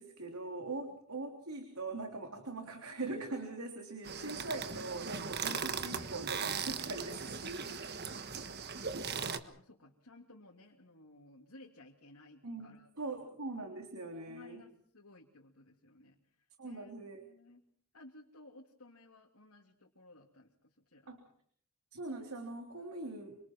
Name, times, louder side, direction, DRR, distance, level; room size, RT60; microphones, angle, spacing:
voice 1, 0.0-7.8 12.4-14.6 16.6-17.2 21.1-21.2 21.9-23.4, right 2 dB, 85° right, 3 dB, 3.4 m, -42 dB
sound 1, 4.0-9.4, right 6 dB, 45° right, 1.5 m, -39 dB
voice 2, 8.7-13.3 14.3-17.6 17.9-21.3, left 2 dB, 90° left, -1 dB, 3.0 m, -58 dB
27.0 x 26.0 x 4.7 m, 0.62 s
head